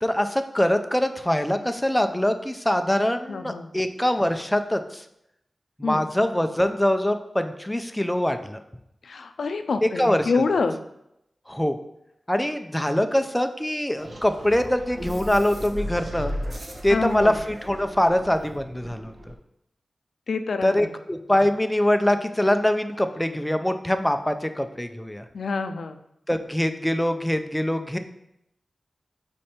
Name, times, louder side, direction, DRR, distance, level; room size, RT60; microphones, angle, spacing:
voice 1, 0.0-5.0 5.8-8.6 9.8-10.3 11.5-11.8 12.3-16.3 16.8-19.3 20.6-25.2 26.3-28.0, left 1 dB, 5° left, 7 dB, 0.4 m, -23 dB
voice 2, 3.3-3.7 5.8-6.1 9.0-10.8 16.9-17.4 20.3-20.9 25.3-26.0, left 4 dB, 85° left, 8 dB, 0.4 m, -27 dB
sound 1, 14.0-19.3, equal, 40° right, 0.8 m, -35 dB
5.0 x 4.3 x 4.3 m, 0.81 s
wide cardioid pair, 105°, 0 cm